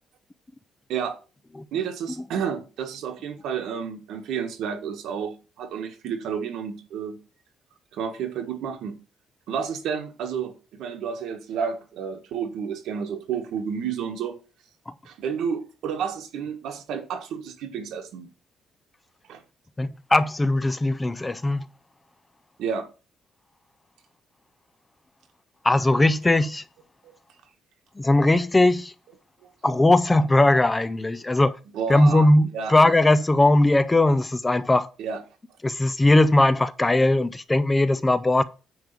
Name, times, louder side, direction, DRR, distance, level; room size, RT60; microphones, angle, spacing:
voice 1, 1.7-7.2 7.9-9.0 9.5-14.4 15.0-18.3 19.3-19.4 22.6-22.9 27.0-27.1 31.7-32.7 35.0-35.2, right 7 dB, 80° right, 1.6 m, -31 dB
voice 2, 19.8-21.6 25.6-26.6 28.0-28.9 29.6-31.5 31.9-34.9 35.6-38.4, left 2 dB, 15° left, 0.4 m, -19 dB
9.5 x 3.4 x 6.8 m
cardioid pair, 155°, 0 cm